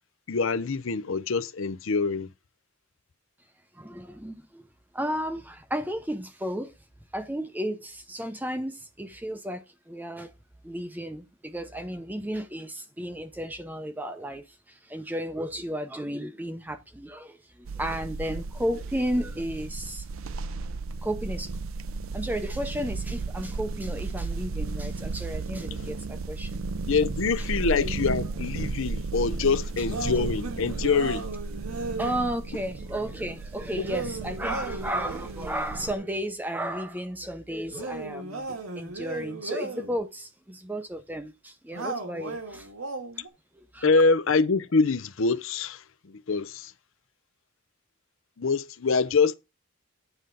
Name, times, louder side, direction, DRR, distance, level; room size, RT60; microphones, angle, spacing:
voice 1, 0.3-2.3 25.8-25.9 26.9-31.3 43.8-46.7 48.4-49.3, left 4 dB, 60° left, 0.6 m, -25 dB
voice 2, 3.7-4.6 4.9-6.7 7.1-10.3 10.6-20.1 21.0-21.5 22.1-26.6 27.8-27.9 32.0-38.5 38.7-42.7 43.6-43.9, equal, 10° right, 0.6 m, -33 dB
sound 1, 17.6-35.9, right 3 dB, 65° right, 0.5 m, -34 dB
sound 2, 29.9-32.2 33.8-35.5 37.7-40.0 41.7-43.3, right 3 dB, 85° right, 1.8 m, -36 dB
9.3 x 3.9 x 6.8 m
head